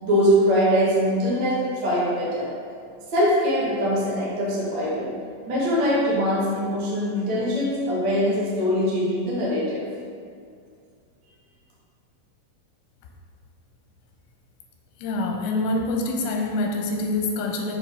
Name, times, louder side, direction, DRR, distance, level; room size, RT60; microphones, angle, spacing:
voice 1, 0.0-2.5 3.1-5.1 5.5-9.8, equal, 55° right, -8 dB, 1.3 m, -22 dB
voice 2, 15.0-17.8, left 2 dB, 80° left, 1 dB, 2.5 m, -26 dB
7.0 x 4.4 x 3.5 m, 2.2 s
omnidirectional pair, 4.3 m